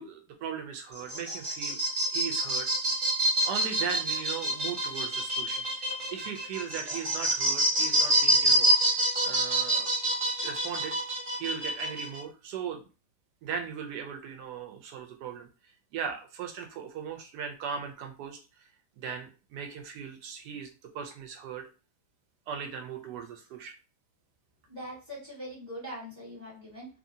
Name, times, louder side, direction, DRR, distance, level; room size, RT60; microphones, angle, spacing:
voice 1, 0.0-1.8 2.1-2.7 3.5-9.9 10.4-11.0 11.4-12.9 13.4-15.5 15.9-18.7 19.0-20.7 20.9-21.7 22.5-23.7, right 7 dB, 75° right, 5 dB, 1.1 m, -38 dB
sound 1, 0.9-12.2, right 1 dB, 40° right, 1.0 m, -27 dB
voice 2, 24.7-26.9, equal, 20° right, -6 dB, 1.3 m, -42 dB
2.7 x 2.7 x 2.6 m, 0.33 s
omnidirectional pair, 1.9 m